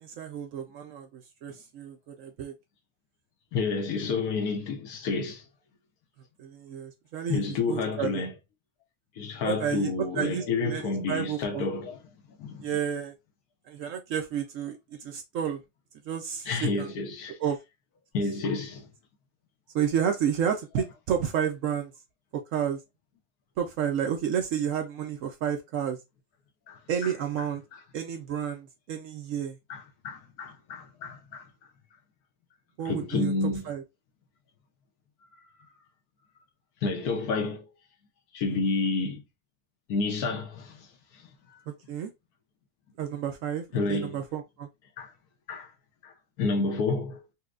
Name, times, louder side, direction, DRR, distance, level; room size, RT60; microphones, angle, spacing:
voice 1, 0.0-2.5 6.4-7.4 7.7-8.2 9.4-11.6 12.6-13.1 13.7-15.6 16.1-16.9 17.4-17.6 19.7-21.9 22.3-22.8 23.6-26.0 26.9-27.6 27.9-29.6 32.8-33.3 33.7-33.8 41.7-42.1 43.0-44.7, right 8 dB, 70° right, 0.8 m, -31 dB
voice 2, 3.5-5.4 7.3-8.3 9.2-12.0 12.4-12.7 16.5-17.4 18.1-18.9 26.7-27.1 27.7-27.8 29.7-31.5 32.9-33.7 36.8-37.6 38.3-39.2 39.9-40.9 43.7-44.2 45.0-45.1 45.5-45.7 46.0-47.2, left 4 dB, 75° left, 1.3 m, -30 dB
4.2 x 2.2 x 2.4 m
omnidirectional pair, 1.7 m